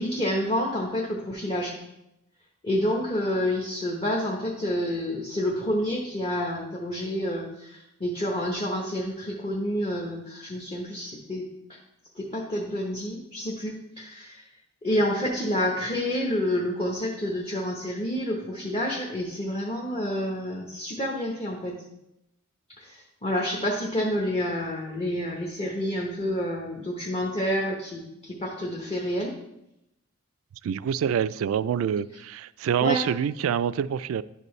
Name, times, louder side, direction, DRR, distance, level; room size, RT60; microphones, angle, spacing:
voice 1, 0.0-1.8 2.6-11.8 12.1-14.4 14.8-21.7 22.8-29.3 32.8-33.0, equal, 30° left, -2 dB, 0.9 m, -29 dB
voice 2, 30.6-34.2, right 8 dB, 80° right, 17 dB, 0.3 m, -26 dB
11.0 x 5.3 x 3.1 m, 0.86 s
head